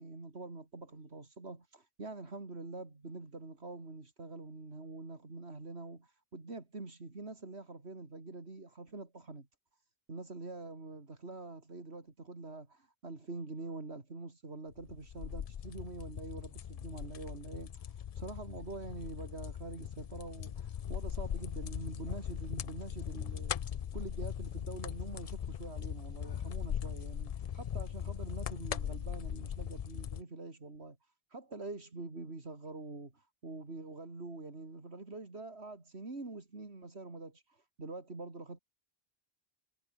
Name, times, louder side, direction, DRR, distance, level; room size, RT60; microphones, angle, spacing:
voice 1, 0.0-9.5 10.1-23.5 23.9-31.0 31.3-38.6, right 3 dB, 90° right, 3.5 m, -45 dB
sound 1, 14.8-30.2, left 9 dB, 55° left, 0.4 m, -40 dB
omnidirectional pair, 1.1 m